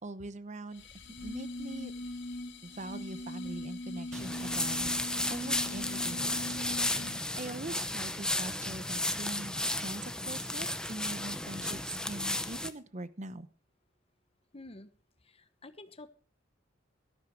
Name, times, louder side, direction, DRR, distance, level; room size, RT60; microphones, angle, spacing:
voice 1, 0.0-0.8 1.2-1.9 2.6-6.6 7.1-13.5, right 2 dB, 40° right, 14 dB, 0.9 m, -42 dB
sound 1, 0.7-7.2, left 1 dB, 65° left, 2.4 m, -41 dB
sound 2, 4.1-12.7, left 1 dB, 5° left, 0.9 m, -34 dB
voice 2, 14.5-14.9 15.2-16.1, left 2 dB, 30° left, 11 dB, 1.1 m, -49 dB
13.5 x 12.5 x 4.6 m, 0.38 s
head